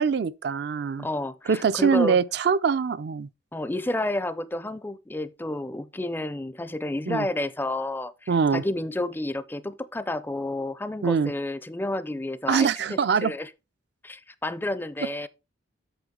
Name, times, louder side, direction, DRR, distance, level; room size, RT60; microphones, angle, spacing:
voice 1, 0.0-1.1 1.5-3.3 7.1-7.3 8.3-8.6 11.0-11.3 12.5-13.3, right 6 dB, 55° right, 0.4 m, -23 dB
voice 2, 1.0-2.2 3.5-13.5 14.0-15.3, left 1 dB, 10° left, 0.4 m, -30 dB
8.0 x 7.1 x 3.7 m
head